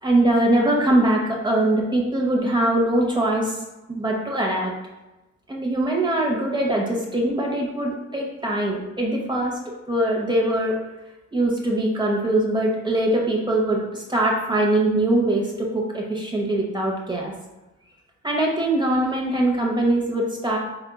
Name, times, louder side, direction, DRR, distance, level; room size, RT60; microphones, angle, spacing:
voice 1, 0.0-3.6 3.9-4.7 5.5-10.8 11.3-17.3 18.2-20.6, right 1 dB, 15° right, -1 dB, 0.8 m, -22 dB
5.0 x 3.6 x 2.2 m, 1.1 s
cardioid pair, 90°, 30 cm